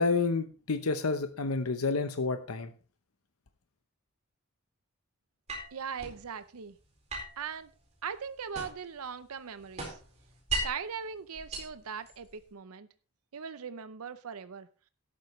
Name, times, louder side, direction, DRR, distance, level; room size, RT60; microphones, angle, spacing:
voice 1, 0.0-2.7, left 4 dB, 80° left, 8 dB, 0.8 m, -29 dB
sound 1, 5.5-6.2 7.1-9.0 9.3-10.9 11.3-12.4, right 2 dB, 30° right, 4.3 m, -38 dB
voice 2, 5.7-6.8 7.4-7.7 8.0-10.0 10.6-12.9 13.3-14.7, right 6 dB, 85° right, 13 dB, 0.6 m, -40 dB
13.0 x 11.5 x 3.1 m, 0.36 s
head